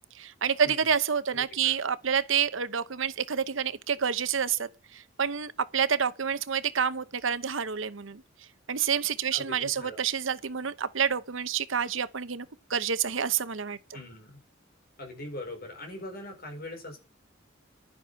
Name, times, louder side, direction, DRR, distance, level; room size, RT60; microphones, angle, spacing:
voice 1, 0.2-8.2 8.7-13.8, right 7 dB, 75° right, 0.9 m, -28 dB
voice 2, 1.3-1.7 9.3-10.0 13.9-14.4 15.0-17.0, left 1 dB, 50° left, 4.8 m, -41 dB
11.5 x 9.8 x 5.7 m
head